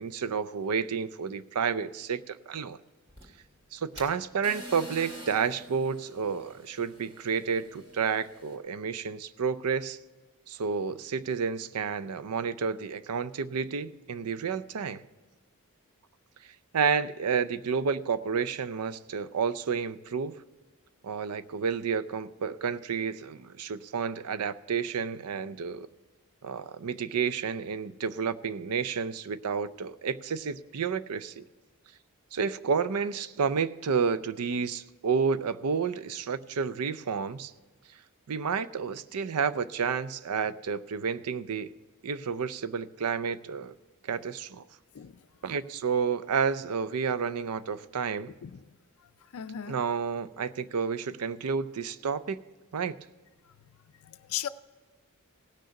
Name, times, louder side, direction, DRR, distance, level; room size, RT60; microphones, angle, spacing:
voice 1, 0.0-2.8 3.7-10.0 10.5-15.0 16.7-20.3 21.0-25.9 26.4-31.4 32.3-37.5 38.3-41.7 42.0-43.7 44.0-44.6 45.4-48.3 49.7-52.4 52.7-53.0, right 6 dB, 90° right, 0.5 m, -30 dB
sound 1, 3.1-8.6, equal, 25° right, 2.2 m, -47 dB
voice 2, 49.3-49.8 54.0-54.5, left 10 dB, 70° left, 0.4 m, -36 dB
16.5 x 6.4 x 5.7 m
head